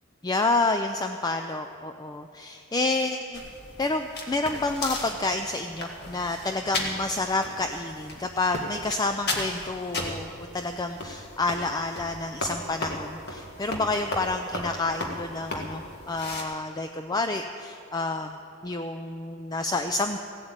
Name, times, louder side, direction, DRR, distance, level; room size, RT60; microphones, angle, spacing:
voice 1, 0.2-3.4 3.8-18.4 18.6-20.2, left 2 dB, 20° left, 6 dB, 0.4 m, -29 dB
sound 1, 3.3-16.4, left 2 dB, 50° left, 1.8 m, -36 dB
16.0 x 8.0 x 8.8 m, 2.7 s
head